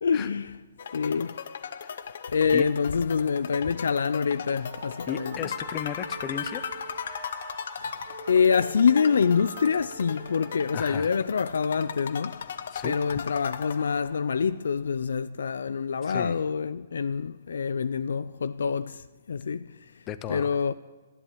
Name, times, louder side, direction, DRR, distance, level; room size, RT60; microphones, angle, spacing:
voice 1, 0.0-0.6 0.9-1.4 2.3-5.5 8.3-12.5 12.8-19.7 20.3-20.7, left 6 dB, 75° left, 0.5 m, -26 dB
sound 1, 0.8-14.4, left 7 dB, 50° left, 0.8 m, -38 dB
sound 2, 4.5-9.9, right 6 dB, 45° right, 1.5 m, -49 dB
voice 2, 5.1-6.7 10.7-11.1 12.7-13.2 16.0-16.4 20.1-20.6, left 10 dB, 15° left, 0.6 m, -35 dB
Wind instrument woodwind instrument, 5.1-10.9, right 3 dB, 25° right, 2.2 m, -44 dB
15.0 x 11.0 x 8.4 m
hypercardioid pair, 170°, 0 cm